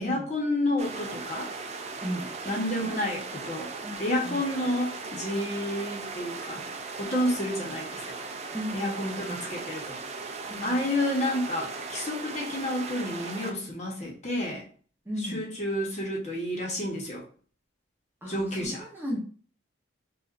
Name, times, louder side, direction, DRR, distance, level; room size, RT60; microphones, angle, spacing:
voice 1, 0.0-1.5 2.5-3.7 4.0-6.6 7.0-8.2 8.7-10.0 10.6-14.6 15.2-17.2 18.3-18.8, left 1 dB, 35° left, -2 dB, 1.0 m, -30 dB
sound 1, 0.8-13.5, right 4 dB, 35° right, 0.4 m, -38 dB
voice 2, 2.0-2.3 2.8-3.0 3.8-4.0 4.2-4.4 8.5-9.5 10.5-10.8 15.0-15.4 18.2-19.2, equal, 10° right, -4 dB, 0.9 m, -36 dB
5.2 x 2.5 x 2.5 m, 0.43 s
head